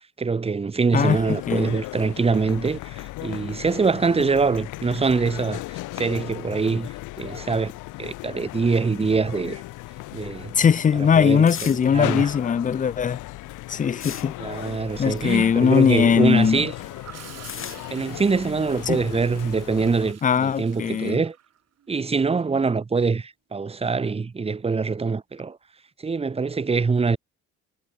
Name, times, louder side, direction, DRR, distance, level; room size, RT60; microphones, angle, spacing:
voice 1, 0.2-7.7 8.0-9.6 10.1-10.6 10.9-12.3 14.4-16.7 17.9-21.4 21.9-25.6 26.0-27.2, right 4 dB, 20° right, 0.9 m, -24 dB
sound 1, 0.9-20.1, left 18 dB, 85° left, 2.8 m, -37 dB
voice 2, 10.6-13.2 13.7-14.3 15.0-16.7 18.9-19.0 20.2-21.2, left 7 dB, 25° left, 0.5 m, -20 dB
sound 2, 11.4-16.3 16.6-20.0, left 7 dB, 45° left, 3.9 m, -42 dB
Gurgling / Toilet flush, 16.3-22.1 24.1-24.3, right 10 dB, 55° right, 2.5 m, -47 dB
cardioid pair, 85°, 30 cm